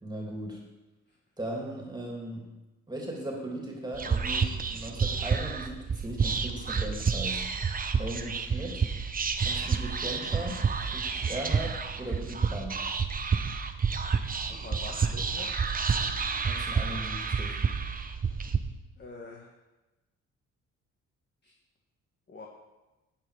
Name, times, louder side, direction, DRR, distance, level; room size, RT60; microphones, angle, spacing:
voice 1, 0.0-0.6 1.4-2.5 2.9-7.5 8.0-8.9 9.4-12.9 16.4-17.6, right 1 dB, 15° right, -1 dB, 2.9 m, -38 dB
Whispering, 3.9-18.6, right 5 dB, 30° right, 1.0 m, -29 dB
voice 2, 14.5-15.5 19.0-19.5 21.4-21.5 22.3-22.5, left 3 dB, 35° left, -1 dB, 1.8 m, -45 dB
11.5 x 8.9 x 5.1 m, 1.1 s
cardioid pair, 90°, 30 cm